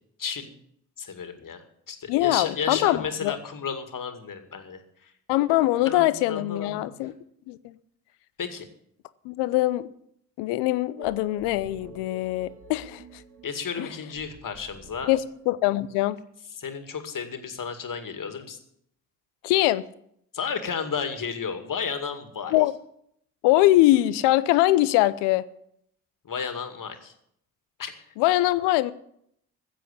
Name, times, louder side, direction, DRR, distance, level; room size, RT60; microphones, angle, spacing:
voice 1, 0.2-0.5 1.0-5.1 5.6-6.9 8.4-8.7 13.4-15.1 16.6-18.6 20.3-22.5 26.2-27.1 27.8-27.9, left 6 dB, 50° left, 8 dB, 2.3 m, -33 dB
voice 2, 2.1-3.4 5.3-7.1 7.5-7.7 9.2-9.9 10.4-13.2 13.8-13.9 15.1-15.2 15.5-16.2 19.4-19.8 22.5-22.7 23.4-25.4 28.2-28.9, left 16 dB, 85° left, 17 dB, 0.7 m, -22 dB
sound 1, 11.0-16.0, right 5 dB, 55° right, 3.1 m, -48 dB
14.5 x 7.7 x 8.3 m, 0.73 s
hypercardioid pair, 45°, 40 cm